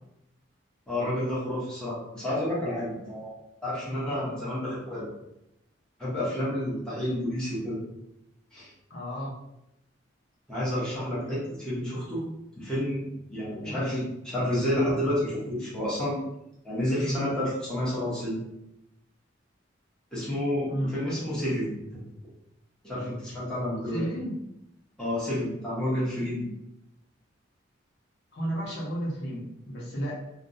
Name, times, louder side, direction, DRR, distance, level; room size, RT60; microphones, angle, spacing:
voice 1, 0.9-3.3 3.6-5.1 6.0-7.8 8.5-8.7 10.5-12.2 12.5-16.2 16.6-18.4 20.1-21.7 22.8-24.0 25.0-26.5, left 1 dB, 5° left, -10 dB, 0.8 m, -30 dB
voice 2, 8.9-9.3 13.5-13.8 17.0-17.2 20.7-21.0 23.9-24.4 28.3-30.2, equal, 60° left, -5 dB, 0.7 m, -32 dB
2.5 x 2.1 x 2.5 m, 0.86 s
head